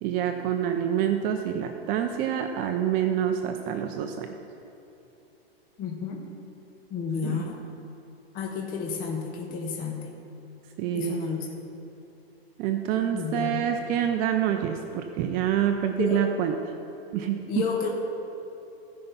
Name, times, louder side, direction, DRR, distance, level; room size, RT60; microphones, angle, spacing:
voice 1, 0.0-4.3 7.2-7.5 10.8-11.2 12.6-16.5 17.1-17.7, right 9 dB, 30° right, 5 dB, 0.5 m, -27 dB
voice 2, 5.8-6.2 6.9-7.6 8.3-10.1 10.9-11.6 13.1-13.6 16.0-16.3 17.5-17.9, left 6 dB, 25° left, 0 dB, 1.2 m, -31 dB
15.0 x 5.4 x 5.6 m, 3.0 s
hypercardioid pair, 135°, 31 cm